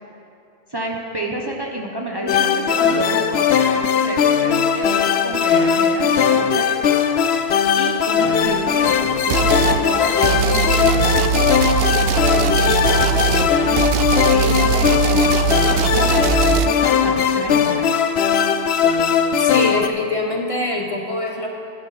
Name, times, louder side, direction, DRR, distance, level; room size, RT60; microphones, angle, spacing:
voice 1, 0.7-6.7 7.8-11.5 11.9-13.9 14.3-18.0, right 1 dB, 25° right, 0 dB, 1.0 m, -29 dB
sound 1, 2.3-19.9, left 7 dB, 80° left, 0.9 m, -18 dB
sound 2, 8.4-16.0, left 1 dB, 50° left, 3.5 m, -44 dB
sound 3, 9.3-9.8 10.2-16.7, right 7 dB, 70° right, 0.8 m, -20 dB
voice 2, 19.4-21.5, left 2 dB, 35° left, 1 dB, 1.2 m, -23 dB
16.0 x 11.0 x 4.2 m, 2.5 s
omnidirectional pair, 1.0 m